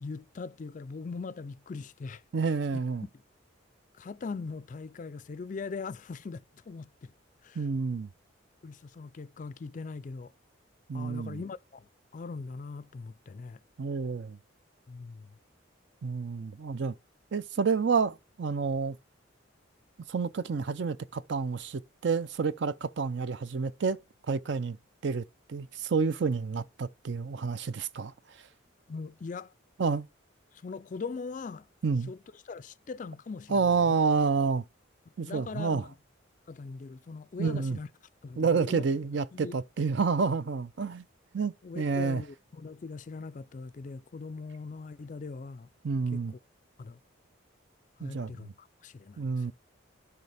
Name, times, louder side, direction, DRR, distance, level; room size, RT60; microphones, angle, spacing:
voice 1, 0.0-2.2 3.9-7.1 7.4-7.7 8.6-10.3 10.9-13.6 14.9-15.4 28.9-29.5 30.5-31.7 32.1-34.0 35.3-36.0 36.5-37.9 38.2-38.9 39.3-39.6 41.6-45.7 46.1-46.4 46.8-47.0 48.0-49.5, left 4 dB, 40° left, 0.3 m, -41 dB
voice 2, 2.3-3.0 7.6-8.1 10.9-11.4 13.8-14.4 16.0-16.9 17.3-19.0 20.1-24.0 24.3-24.8 25.0-28.4 29.8-30.1 31.8-32.1 33.5-34.6 35.2-35.8 37.4-37.8 38.4-41.0 41.3-42.2 45.8-46.3 48.0-48.3 49.2-49.5, right 5 dB, 60° right, 0.4 m, -29 dB
11.0 x 6.6 x 3.4 m
head